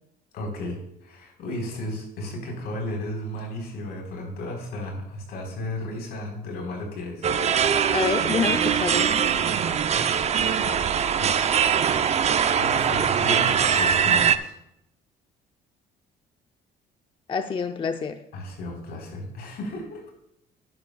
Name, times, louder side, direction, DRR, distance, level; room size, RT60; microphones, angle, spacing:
voice 1, 0.3-7.3 7.6-7.7 10.6-10.9 11.2-11.4 12.5-14.5 18.3-20.0, left 1 dB, 75° left, 1 dB, 4.1 m, -34 dB
sound 1, 7.2-14.4, right 7 dB, 40° right, 0.6 m, -22 dB
voice 2, 7.9-9.1 17.3-18.2, left 6 dB, 30° left, 7 dB, 0.5 m, -27 dB
12.0 x 10.5 x 2.3 m, 0.78 s
cardioid pair, 110°, 17 cm